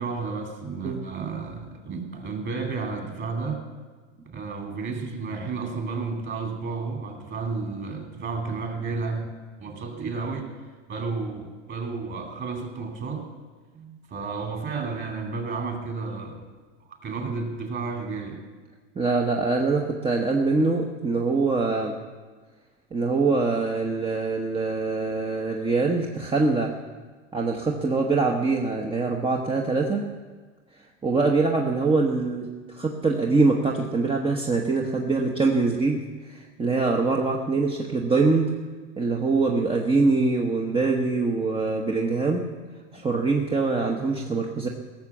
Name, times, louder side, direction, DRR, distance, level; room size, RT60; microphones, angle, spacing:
voice 1, 0.0-3.6 4.2-9.3 9.6-10.5 10.9-13.3 14.1-16.5 17.0-18.4, right 4 dB, 30° right, 3 dB, 2.8 m, -32 dB
voice 2, 19.0-22.0 22.9-26.7 27.3-30.0 31.0-38.5 39.0-42.5 42.9-44.7, right 3 dB, 15° right, 1 dB, 1.0 m, -24 dB
17.5 x 6.8 x 7.3 m, 1.4 s
hypercardioid pair, 110°, 37 cm